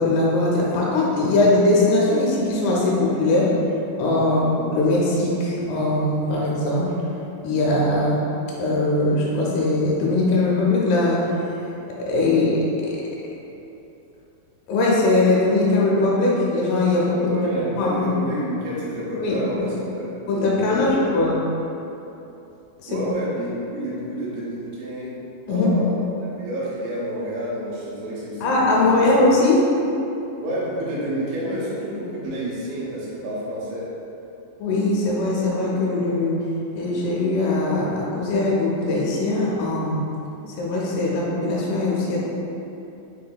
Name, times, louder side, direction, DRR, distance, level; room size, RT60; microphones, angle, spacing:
voice 1, 0.0-3.5 4.0-6.9 7.4-8.2 8.6-11.2 12.1-12.6 14.7-17.3 17.8-18.1 19.2-19.4 20.3-21.3 22.8-23.0 25.5-25.7 28.4-29.6 34.6-36.4 36.8-40.0 40.6-42.2, left 2 dB, 85° left, -5 dB, 3.3 m, -20 dB
voice 2, 17.1-21.3 22.9-25.2 25.5-29.3 30.4-33.9, right 1 dB, 80° right, -7 dB, 3.2 m, -29 dB
7.3 x 2.6 x 2.3 m, 2.9 s
omnidirectional pair, 5.7 m